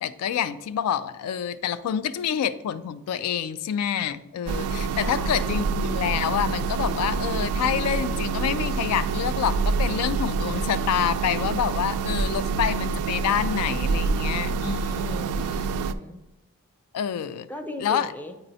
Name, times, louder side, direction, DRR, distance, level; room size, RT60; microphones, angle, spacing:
voice 1, 0.0-15.2 16.9-17.5 17.8-18.1, left 8 dB, 85° left, 15 dB, 0.3 m, -27 dB
sound 1, 4.5-15.9, right 4 dB, 75° right, 0.3 m, -27 dB
voice 2, 4.8-5.6 15.0-16.2 17.5-18.4, left 1 dB, 10° left, 6 dB, 0.4 m, -39 dB
8.8 x 4.3 x 2.7 m, 1.0 s
head